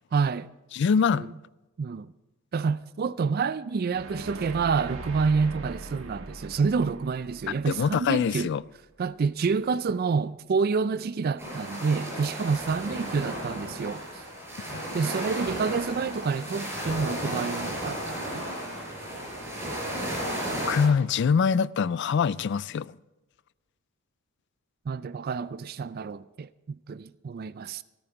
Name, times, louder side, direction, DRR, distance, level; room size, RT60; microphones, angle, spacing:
voice 1, 0.1-0.5 1.1-1.3 1.8-2.1 2.5-8.5 9.0-14.2 14.9-18.0 18.3-18.5 24.9-27.8, right 5 dB, 45° right, 0.3 m, -28 dB
voice 2, 0.7-1.3 7.7-8.6 14.7-14.8 20.7-22.9, left 6 dB, 55° left, 0.3 m, -24 dB
sound 1, 3.9-9.0, right 2 dB, 65° right, 1.8 m, -42 dB
sound 2, 11.4-20.9, equal, 10° right, 5.4 m, -34 dB
13.5 x 13.5 x 4.5 m
head